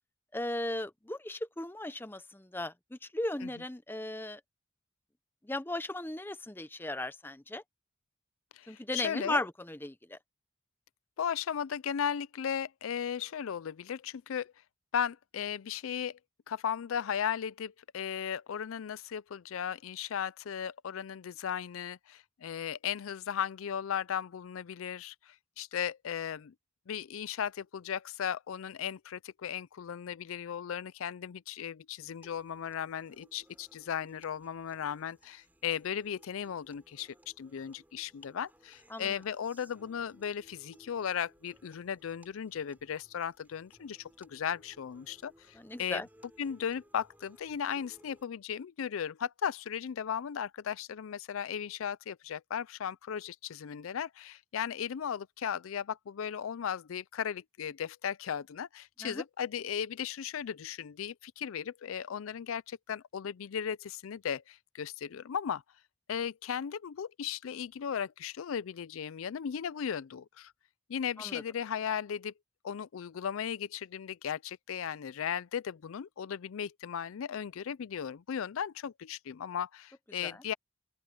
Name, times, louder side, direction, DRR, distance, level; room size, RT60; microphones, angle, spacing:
voice 1, 0.3-4.4 5.4-7.6 8.7-10.2 38.9-39.2 45.6-46.1 59.0-59.2 71.2-71.4 80.2-80.4, left 1 dB, 10° left, 0.7 m, -36 dB
voice 2, 8.5-9.4 11.2-14.5 14.9-16.2 16.5-26.5 26.9-46.0 46.4-65.6 66.1-70.5 70.9-72.3 72.6-80.5, left 8 dB, 80° left, 0.4 m, -36 dB
sound 1, 32.2-48.2, right 1 dB, 10° right, 5.8 m, -62 dB
open air
head